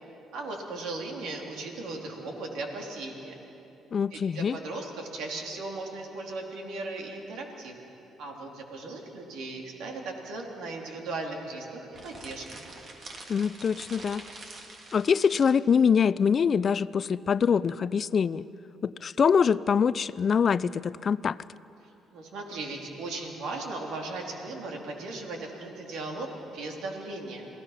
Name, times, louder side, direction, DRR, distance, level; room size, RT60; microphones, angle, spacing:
voice 1, 0.3-3.4 4.1-7.8 8.2-12.7 21.8-27.5, right 2 dB, 75° right, 1 dB, 3.1 m, -37 dB
voice 2, 3.9-4.6 13.3-14.2 14.9-18.4 18.8-21.4, left 6 dB, 50° left, 18 dB, 0.5 m, -24 dB
sound 1, 11.9-15.6, right 2 dB, 50° right, 3.0 m, -45 dB
27.5 x 17.0 x 5.8 m, 3.0 s
supercardioid pair, 70°, 0 cm